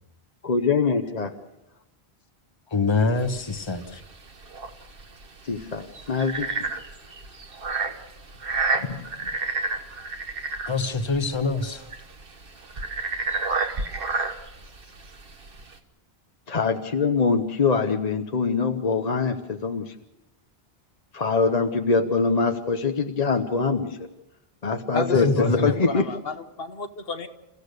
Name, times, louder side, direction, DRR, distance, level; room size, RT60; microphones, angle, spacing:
voice 1, 0.4-1.3 5.5-6.5 8.8-9.0 16.5-19.8 21.1-24.0 24.6-26.0, left 4 dB, 45° left, 6 dB, 0.9 m, -23 dB
voice 2, 2.7-4.0 10.7-11.9 25.1-25.7, left 3 dB, 25° left, 9 dB, 1.2 m, -25 dB
sound 1, 3.2-15.8, right 4 dB, 60° right, 1.6 m, -31 dB
voice 3, 24.9-27.3, left 4 dB, 70° left, 8 dB, 1.4 m, -31 dB
29.0 x 15.5 x 6.7 m, 0.97 s
omnidirectional pair, 1.0 m